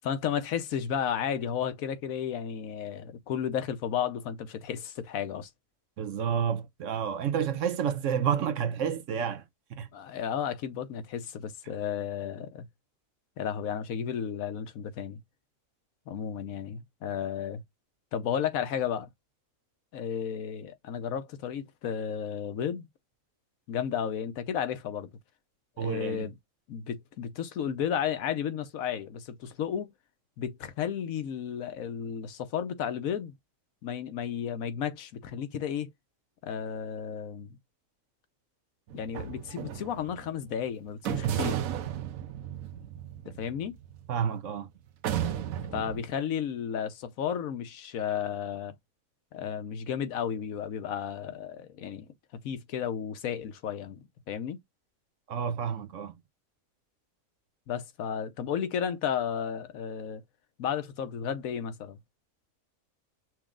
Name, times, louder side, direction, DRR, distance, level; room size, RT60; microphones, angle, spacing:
voice 1, 0.0-5.5 9.9-12.7 13.4-15.2 16.1-17.6 18.1-19.1 19.9-22.9 23.7-25.1 25.8-26.4 26.7-29.9 30.4-33.3 33.8-35.9 36.4-37.6 38.9-41.6 43.3-43.7 45.7-48.7 49.3-54.0 54.3-54.6 57.7-60.2 60.6-62.0, left 8 dB, 80° left, 1.2 m, -33 dB
voice 2, 6.0-9.4 9.7-9.9 25.8-26.3 44.1-44.7 55.3-56.1, right 8 dB, 70° right, 1.1 m, -30 dB
sound 1, 38.9-40.3 41.0-44.5 45.0-46.0, right 10 dB, 85° right, 1.1 m, -34 dB
6.1 x 2.2 x 3.6 m
omnidirectional pair, 1.4 m